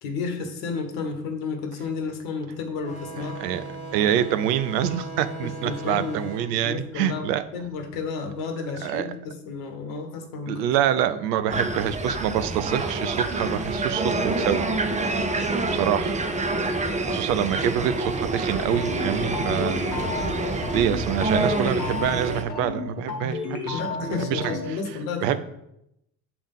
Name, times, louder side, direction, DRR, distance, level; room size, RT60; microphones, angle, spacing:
voice 1, 0.0-3.4 5.4-6.2 6.5-7.3 7.5-10.7 23.7-25.4, left 4 dB, 60° left, 5 dB, 1.2 m, -32 dB
sound 1, 2.8-8.0, right 3 dB, 15° left, 1.5 m, -38 dB
voice 2, 3.2-3.6 3.9-7.4 8.8-9.1 10.5-14.7 15.7-16.2 17.0-20.2 20.5-23.8 24.2-24.6 25.2-25.4, right 10 dB, 70° right, 12 dB, 0.6 m, -26 dB
sound 2, 11.5-22.4, right 2 dB, 15° right, 0.8 m, -27 dB
sound 3, 18.6-24.6, left 4 dB, 80° left, 1.2 m, -32 dB
6.9 x 3.5 x 5.3 m, 0.82 s
figure-of-eight pair, 50°, 50 cm